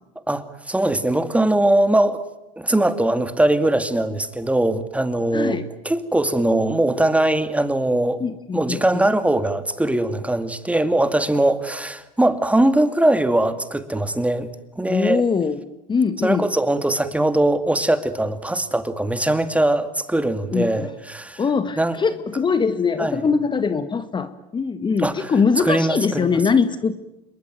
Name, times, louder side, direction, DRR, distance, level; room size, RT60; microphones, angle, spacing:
voice 1, 0.3-2.2 2.6-8.2 8.5-14.5 14.8-15.2 16.2-21.4 21.8-22.0 23.0-23.2 25.0-26.3, right 1 dB, 5° right, 11 dB, 2.2 m, -21 dB
voice 2, 5.3-5.7 8.2-9.1 14.9-15.6 15.9-16.5 20.5-20.9 21.4-27.0, left 5 dB, 25° left, 11 dB, 1.7 m, -22 dB
27.0 x 22.5 x 9.3 m, 0.91 s
hypercardioid pair, 85°, 19 cm